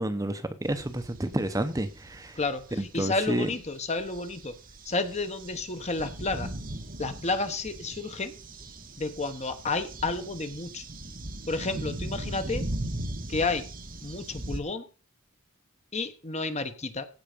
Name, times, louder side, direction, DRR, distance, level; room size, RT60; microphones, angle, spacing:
voice 1, 0.0-2.4 2.7-3.5, right 1 dB, 15° right, 9 dB, 0.7 m, -30 dB
sound 1, 0.6-14.6, right 1 dB, 40° right, 1.6 m, -39 dB
voice 2, 2.4-4.5 4.9-6.5 7.0-8.3 9.0-10.8 11.5-12.6 13.3-13.6 14.0-14.8 15.9-17.1, left 3 dB, 30° left, 9 dB, 1.2 m, -31 dB
16.0 x 5.7 x 5.1 m, 0.37 s
head